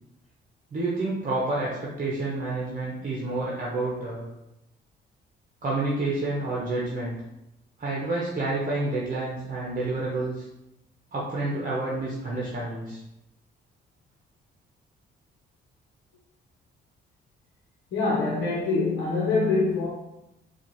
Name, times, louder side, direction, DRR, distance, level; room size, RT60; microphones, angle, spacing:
voice 1, 0.7-4.3 5.6-7.2 7.8-10.5 11.1-13.0, right 2 dB, 40° right, -5 dB, 0.9 m, -29 dB
voice 2, 17.9-19.9, left 3 dB, 70° left, -6 dB, 1.0 m, -24 dB
4.3 x 2.5 x 3.0 m, 0.89 s
cardioid pair, 90°, 20 cm